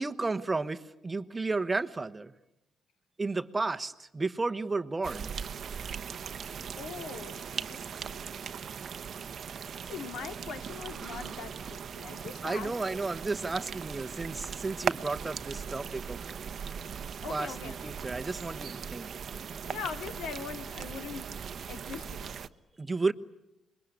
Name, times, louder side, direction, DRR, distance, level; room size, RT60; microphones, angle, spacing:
voice 1, 0.0-2.3 3.2-5.3 12.4-16.4 17.3-17.5 17.8-19.1 22.8-23.1, right 3 dB, 20° right, 9 dB, 1.1 m, -32 dB
sound 1, 5.0-22.5, right 7 dB, 50° right, 0.9 m, -39 dB
voice 2, 6.7-7.4 7.7-8.4 9.8-12.8 16.8-16.9 17.2-17.8 19.7-21.3 21.7-22.4, left 6 dB, 80° left, 8 dB, 2.3 m, -41 dB
26.5 x 22.5 x 9.9 m, 0.88 s
cardioid pair, 110°, 0 cm